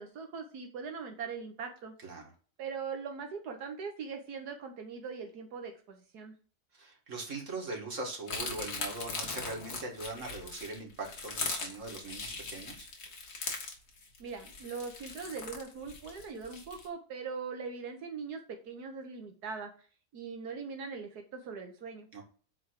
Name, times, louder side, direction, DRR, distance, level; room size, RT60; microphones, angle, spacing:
voice 1, 0.0-1.9 2.6-6.4 14.2-19.7 20.1-22.1, right 5 dB, 90° right, 3 dB, 1.7 m, -41 dB
voice 2, 6.7-12.9 22.1-22.2, right 2 dB, 55° right, 0 dB, 2.5 m, -41 dB
sound 1, 8.3-16.9, left 4 dB, 80° left, 2.3 m, -40 dB
9.3 x 3.5 x 6.4 m, 0.40 s
omnidirectional pair, 1.6 m